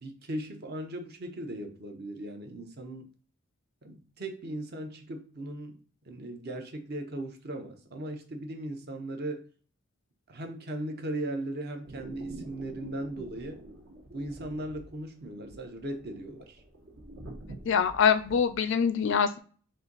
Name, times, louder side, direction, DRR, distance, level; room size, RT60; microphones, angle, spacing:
voice 1, 0.0-3.1 3.8-5.8 6.0-9.4 10.3-13.6 14.1-16.6, right 1 dB, 45° right, 0.7 m, -38 dB
sound 1, 11.8-18.6, right 1 dB, 70° right, 1.3 m, -46 dB
voice 2, 17.6-19.4, left 7 dB, 55° left, 0.4 m, -24 dB
4.2 x 2.6 x 3.9 m
head